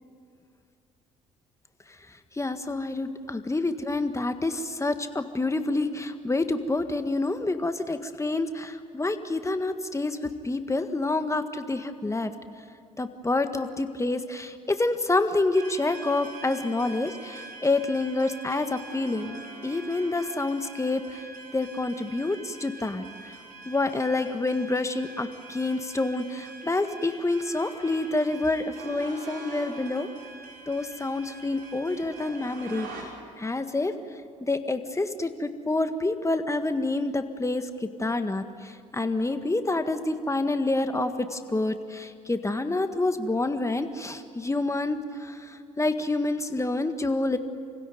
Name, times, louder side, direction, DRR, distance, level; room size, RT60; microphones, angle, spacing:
voice 1, 2.3-12.3 13.0-21.2 21.5-23.0 23.6-30.1 30.7-32.9 33.4-33.9 34.4-47.4, left 2 dB, 15° left, 8 dB, 1.7 m, -28 dB
sound 1, 15.5-33.0, right 3 dB, 60° right, 6.0 m, -44 dB
29.5 x 16.5 x 9.4 m, 2.3 s
hypercardioid pair, 55°, 17 cm